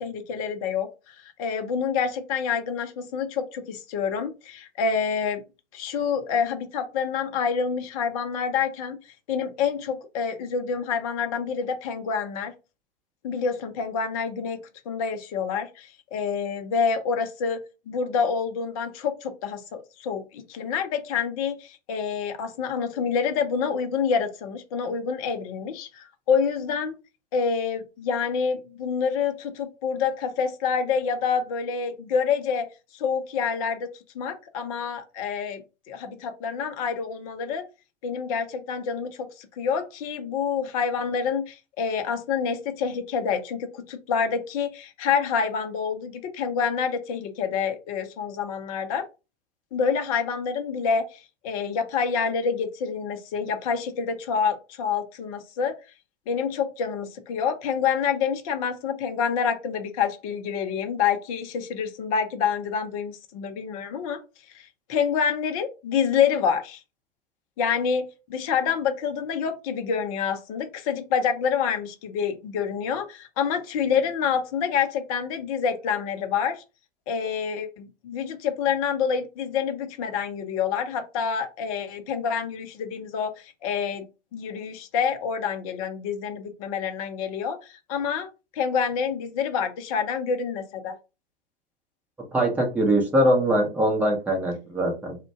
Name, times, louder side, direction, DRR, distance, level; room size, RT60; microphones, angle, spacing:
voice 1, 0.0-5.4 5.7-9.0 9.3-12.5 13.2-14.6 14.9-17.6 17.9-27.0 27.3-33.9 34.1-37.6 38.0-49.1 49.7-55.7 56.3-64.2 64.5-66.8 67.6-76.6 77.1-84.0 84.3-91.0, left 6 dB, 40° left, 7 dB, 0.5 m, -27 dB
voice 2, 92.3-95.2, right 1 dB, 5° right, 0 dB, 0.8 m, -22 dB
2.5 x 2.1 x 3.4 m, 0.29 s
figure-of-eight pair, 105°, 29 cm